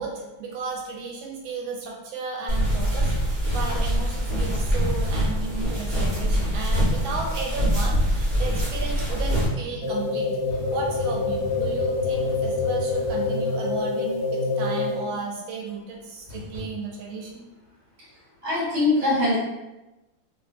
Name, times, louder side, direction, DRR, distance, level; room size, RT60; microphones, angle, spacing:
voice 1, 0.0-17.5, right 4 dB, 75° right, -1 dB, 1.4 m, -34 dB
sound 1, 2.5-9.5, equal, 30° right, 1.0 m, -24 dB
sound 2, 3.5-3.9 5.0-5.5 6.7-7.1 8.3-8.7 10.5-13.4 16.3-16.6, left 6 dB, 90° left, 1.5 m, -36 dB
sound 3, 9.8-15.2, left 3 dB, 55° left, 1.1 m, -26 dB
voice 2, 18.4-19.4, left 2 dB, 60° right, -8 dB, 1.5 m, -22 dB
3.3 x 2.6 x 2.4 m, 1.0 s
omnidirectional pair, 2.2 m